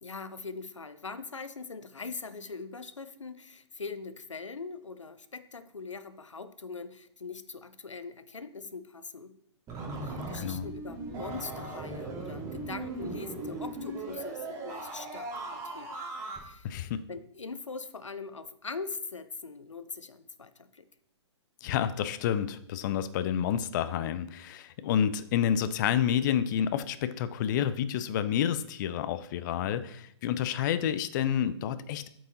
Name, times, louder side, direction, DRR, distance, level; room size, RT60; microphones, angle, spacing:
voice 1, 0.0-9.3 10.0-16.0 16.4-16.7 17.1-20.9, left 4 dB, 90° left, 12 dB, 0.7 m, -42 dB
sound 1, 9.7-16.4, right 2 dB, 20° right, 2.5 m, -38 dB
voice 2, 10.3-10.6 16.6-17.0 21.6-32.1, left 9 dB, 40° left, 12 dB, 0.5 m, -29 dB
8.1 x 4.8 x 4.0 m, 0.68 s
figure-of-eight pair, 120°, 15 cm